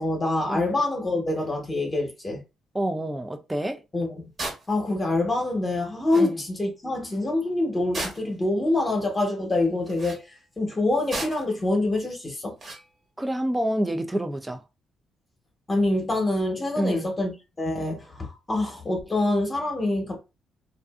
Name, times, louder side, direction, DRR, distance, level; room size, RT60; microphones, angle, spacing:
voice 1, 0.0-2.4 3.9-4.3 4.7-10.2 10.6-12.5 15.7-20.2, left 2 dB, 25° left, 1.0 m, -25 dB
voice 2, 2.7-3.8 6.2-6.4 13.2-14.6 16.8-17.1, right 1 dB, 10° right, 0.4 m, -27 dB
sound 1, 4.4-4.7 5.8-5.9 6.1-6.3 7.9-8.4 9.8-10.2 11.1-11.5 12.6-12.8, right 2 dB, 40° right, 1.1 m, -33 dB
2.5 x 2.4 x 2.4 m
cardioid pair, 90°, 0 cm